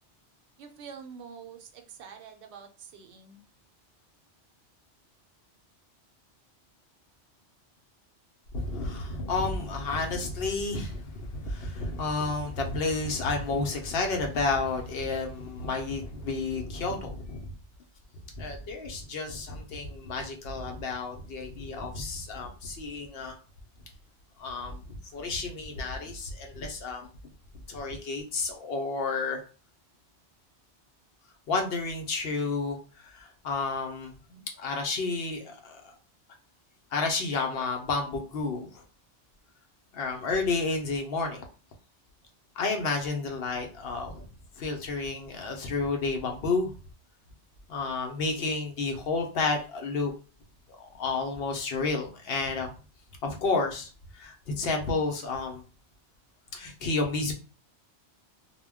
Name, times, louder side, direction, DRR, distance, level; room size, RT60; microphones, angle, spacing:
voice 1, 0.6-3.4, right 6 dB, 75° right, 4 dB, 0.8 m, -46 dB
voice 2, 8.5-17.5 18.4-23.4 24.4-27.1 27.7-29.4 31.5-36.0 36.9-38.8 39.9-41.4 42.6-44.3 44.6-46.7 47.7-50.1 50.7-52.7 53.2-55.6 56.5-57.3, left 3 dB, 65° left, 3 dB, 0.7 m, -31 dB
2.1 x 2.1 x 3.4 m, 0.35 s
omnidirectional pair, 1.2 m